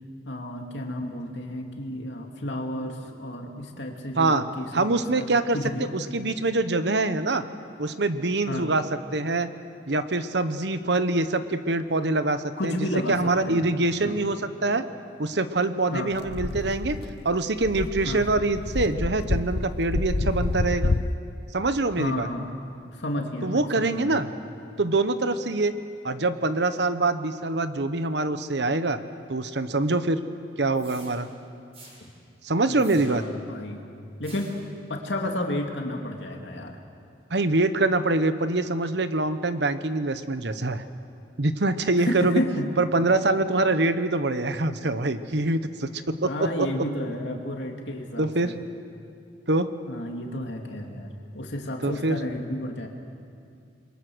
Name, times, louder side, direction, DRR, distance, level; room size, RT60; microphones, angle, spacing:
voice 1, 0.2-5.3 5.5-5.8 8.5-8.7 12.6-13.7 14.0-14.2 15.9-16.1 18.0-18.3 22.0-22.5 22.9-24.2 32.7-33.8 34.2-34.5 34.9-36.8 42.0-42.7 46.2-48.5 49.9-51.1 51.3-52.9, left 1 dB, 90° left, 2 dB, 2.5 m, -31 dB
voice 2, 4.7-5.6 5.9-7.4 7.8-8.8 9.1-9.5 9.9-14.8 15.2-17.0 17.2-20.9 21.5-22.3 23.4-24.3 24.8-25.7 26.0-29.0 29.3-30.2 30.6-31.3 32.4-33.2 37.3-40.8 41.4-42.4 42.8-46.7 48.2-48.5 49.5-49.7 51.8-52.2, right 2 dB, 70° right, 11 dB, 1.1 m, -24 dB
sound 1, 16.2-21.1, left 2 dB, 65° left, 0.7 m, -28 dB
sound 2, 30.7-31.1 31.7-32.0 32.8-33.4 34.2-34.6, right 2 dB, 35° right, 6.4 m, -48 dB
28.5 x 22.5 x 6.4 m, 2.4 s
head